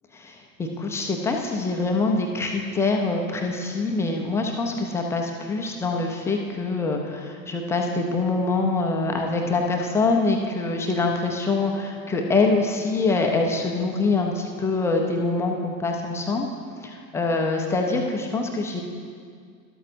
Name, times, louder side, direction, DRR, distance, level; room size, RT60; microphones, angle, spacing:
voice 1, 0.2-16.5 16.8-18.8, left 3 dB, 5° left, 1 dB, 0.3 m, -24 dB
12.5 x 12.0 x 2.6 m, 2.1 s
figure-of-eight pair, 80°, 50 cm